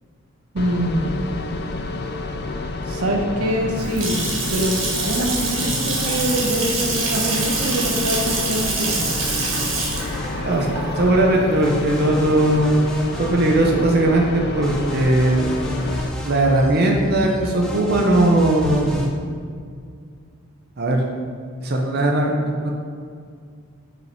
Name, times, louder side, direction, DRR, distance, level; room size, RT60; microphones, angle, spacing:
voice 1, 0.5-1.1 2.9-4.2 4.5-9.1, equal, 90° right, 2 dB, 0.9 m, -24 dB
sound 1, 0.6-16.1, left 2 dB, 45° left, 0.4 m, -29 dB
Water tap faucet / Sink (filling or washing) / Splash splatter, 3.5-12.4, right 3 dB, 65° right, 1.4 m, -25 dB
sound 2, 10.0-10.9 11.6-14.1 14.6-19.1, equal, 5° left, 0.7 m, -33 dB
voice 2, 11.0-12.8 13.2-15.5 16.2-19.1 20.8-21.0 21.6-22.7, right 1 dB, 45° right, 0 dB, 0.7 m, -18 dB
6.5 x 5.1 x 4.5 m, 2.2 s
head